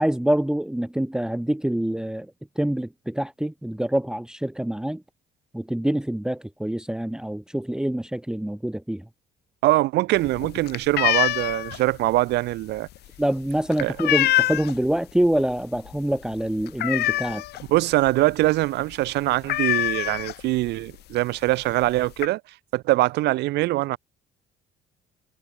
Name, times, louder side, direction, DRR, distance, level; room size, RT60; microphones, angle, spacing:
voice 1, 0.0-2.3 2.6-5.0 5.5-9.0 13.2-17.4, right 1 dB, 5° right, 1.2 m, -25 dB
voice 2, 9.6-12.9 13.8-14.0 17.7-22.4 22.7-24.0, right 18 dB, 85° right, 3.2 m, -23 dB
sound 1, 10.2-14.9 15.3-15.6 15.9-16.0 16.3-17.7 18.1-18.2 18.4-18.6 18.9-19.0 19.4-20.7 21.5-21.6 21.8-22.3, left 15 dB, 75° left, 2.1 m, -25 dB
cardioid pair, 110°, 17 cm